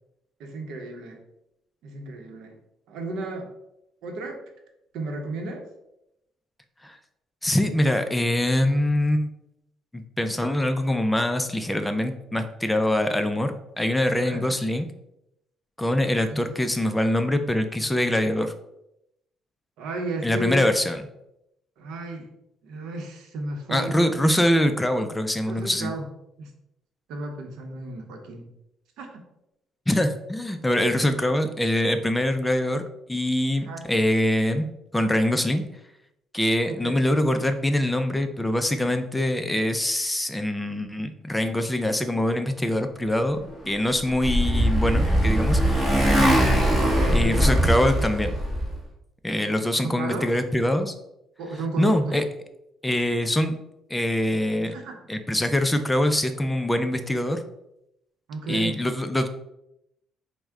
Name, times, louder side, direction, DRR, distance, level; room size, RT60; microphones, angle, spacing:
voice 1, 0.4-1.2 1.8-2.6 2.9-3.5 4.0-4.4 4.9-5.7 14.2-14.4 16.3-16.5 19.8-20.6 21.8-22.3 22.6-24.3 25.5-26.1 26.4-26.5 27.1-28.5 29.0-29.1 33.6-33.9 36.7-37.0 46.7-47.5 49.8-50.4 51.4-52.2 54.7-55.0 58.3-58.8, right 2 dB, 80° right, 3 dB, 0.7 m, -34 dB
voice 2, 7.4-9.3 9.9-14.9 15.8-18.5 20.2-21.1 23.7-25.9 29.9-32.8 33.1-35.6 36.3-45.6 47.1-48.4 49.2-50.9 51.8-52.2 52.8-53.6 53.9-54.7 55.1-57.4 58.5-59.3, left 1 dB, 10° left, 7 dB, 0.3 m, -24 dB
Motorcycle, 43.7-48.7, equal, 10° right, 1.1 m, -21 dB
4.4 x 2.1 x 3.6 m, 0.84 s
cardioid pair, 100°, 0 cm